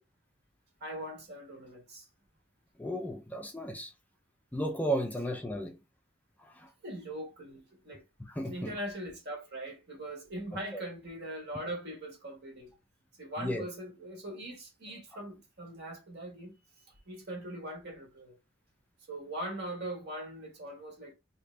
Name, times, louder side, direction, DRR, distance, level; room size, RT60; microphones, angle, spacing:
voice 1, 0.8-2.1 6.8-8.0 8.4-12.7 13.2-16.5 17.1-18.3 19.1-21.1, right 1 dB, 55° right, 1.5 m, -41 dB
voice 2, 2.8-3.9 4.5-5.8 6.6-6.7 8.3-8.7 10.7-10.8 13.4-13.7, equal, 10° left, 0.4 m, -34 dB
3.2 x 2.8 x 3.2 m
head